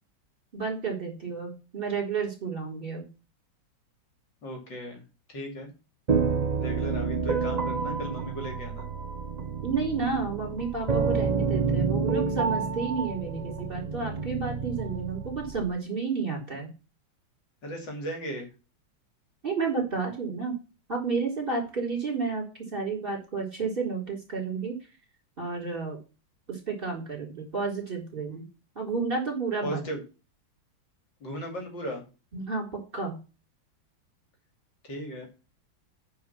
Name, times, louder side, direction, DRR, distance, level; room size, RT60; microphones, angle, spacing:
voice 1, 0.5-3.0 9.6-16.7 19.4-20.5 20.9-22.5 22.7-24.7 25.4-26.0 26.5-28.5 28.8-29.8 32.3-33.2, right 4 dB, 25° right, 0 dB, 4.2 m, -31 dB
voice 2, 4.4-5.0 5.3-5.7 6.6-8.8 17.6-18.5 29.6-30.0 31.2-32.0 34.8-35.3, equal, 60° left, 3 dB, 3.2 m, -36 dB
sound 1, 6.1-15.7, right 5 dB, 50° right, 0.5 m, -29 dB
9.4 x 5.4 x 6.9 m, 0.31 s
omnidirectional pair, 2.3 m